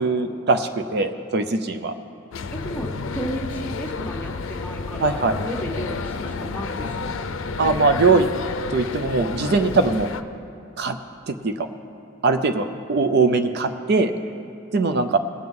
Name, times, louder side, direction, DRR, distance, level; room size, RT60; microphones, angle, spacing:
voice 1, 0.0-1.9 5.0-5.4 7.6-8.3 8.7-10.1 10.8-11.0 11.3-11.7 12.2-14.1 14.7-15.2, right 3 dB, 55° right, 9 dB, 0.5 m, -21 dB
sound 1, 2.3-10.2, left 4 dB, 85° left, 0.5 m, -30 dB
voice 2, 2.5-7.4, equal, 10° left, -1 dB, 1.2 m, -33 dB
19.5 x 7.7 x 3.7 m, 2.5 s
head